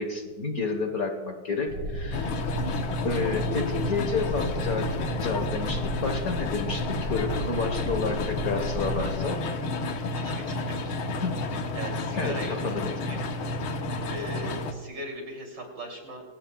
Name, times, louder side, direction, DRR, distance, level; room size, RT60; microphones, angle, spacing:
voice 1, 0.0-2.3 3.0-4.9 5.2-9.6 11.2-11.4 12.2-13.2, left 4 dB, 45° left, 5 dB, 1.6 m, -30 dB
sound 1, 1.7-9.2, equal, 85° right, 6.0 m, -34 dB
sound 2, 2.1-14.7, left 2 dB, 75° left, 2.0 m, -31 dB
voice 2, 10.2-11.0 11.8-12.6 13.0-13.2 14.1-16.2, right 1 dB, 55° right, 1 dB, 3.6 m, -38 dB
24.0 x 17.5 x 2.3 m, 1.3 s
omnidirectional pair, 2.3 m